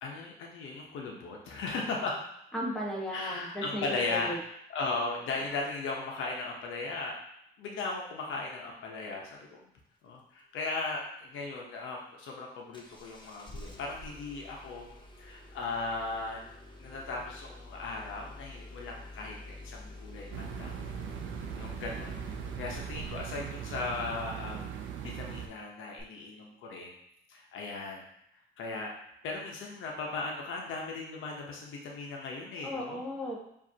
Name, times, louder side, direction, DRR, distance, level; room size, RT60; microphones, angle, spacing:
voice 1, 0.0-2.2 3.1-4.3 4.7-7.2 7.6-9.7 10.0-14.9 15.2-20.7 21.5-22.2 22.6-27.0 27.3-28.0 28.6-28.9 29.2-33.0, left 3 dB, 85° left, 0 dB, 1.0 m, -37 dB
voice 2, 2.5-4.4 32.6-33.4, equal, 5° left, -5 dB, 1.4 m, -35 dB
Engine starting, 12.7-23.3 26.0-26.1, left 2 dB, 25° left, 0.7 m, -48 dB
sound 1, 20.3-25.5, right 8 dB, 75° right, 0.5 m, -40 dB
4.9 x 2.8 x 2.8 m, 0.77 s
cardioid pair, 90°, 20 cm